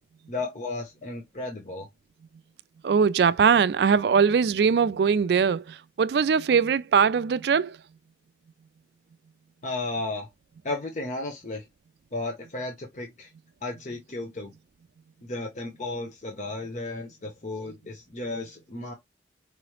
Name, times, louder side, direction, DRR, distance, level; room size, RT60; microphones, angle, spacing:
voice 1, 0.3-1.9 9.6-10.3 10.6-11.7 12.1-13.3 13.6-14.5 15.2-18.9, left 2 dB, 40° left, 0.8 m, -34 dB
voice 2, 2.8-7.8, right 6 dB, 65° right, 0.3 m, -21 dB
4.7 x 2.9 x 3.0 m
head